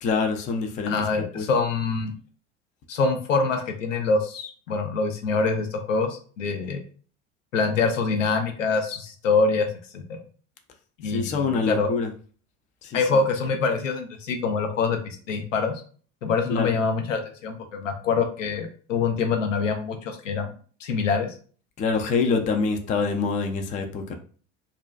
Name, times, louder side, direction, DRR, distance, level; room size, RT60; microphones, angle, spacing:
voice 1, 0.0-1.5 11.1-12.1 12.8-13.0 16.5-16.7 21.8-24.1, left 4 dB, 20° left, 4 dB, 0.3 m, -25 dB
voice 2, 0.9-2.1 2.9-6.8 7.5-9.7 9.9-10.2 11.0-11.9 12.9-15.7 16.2-20.5 20.8-21.3, left 4 dB, 85° left, 5 dB, 0.5 m, -25 dB
2.5 x 2.2 x 2.2 m, 0.42 s
hypercardioid pair, 75°, 37 cm